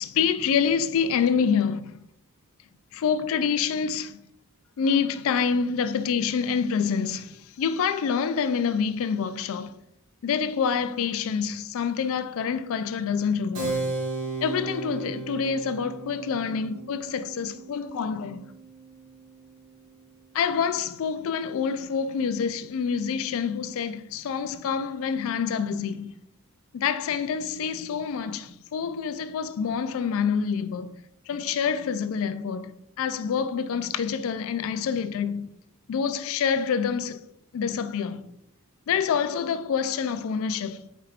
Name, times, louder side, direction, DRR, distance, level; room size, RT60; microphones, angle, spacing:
voice 1, 0.0-1.8 2.9-4.2 4.8-9.7 10.2-13.8 14.4-18.4 20.3-26.1 26.7-30.9 31.3-35.5 35.9-37.2 37.5-38.3 38.9-40.8, left 6 dB, 65° left, 0.3 m, -27 dB
Keyboard (musical), 13.5-19.7, right 3 dB, 85° right, 1.4 m, -35 dB
4.8 x 4.5 x 2.4 m
head